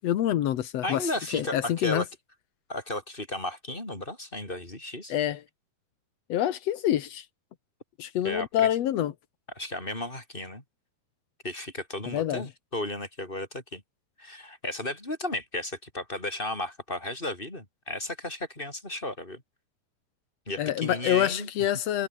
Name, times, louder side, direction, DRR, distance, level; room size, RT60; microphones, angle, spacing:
voice 1, 0.0-2.0 5.1-5.4 6.3-7.3 8.0-9.1 12.1-12.5 20.6-22.1, left 11 dB, 80° left, 1.4 m, -26 dB
voice 2, 0.8-2.1 2.7-5.1 8.2-8.7 9.6-10.6 11.4-13.8 14.2-19.4 20.5-21.7, left 1 dB, 10° left, 6.8 m, -34 dB
omnidirectional pair, 4.7 m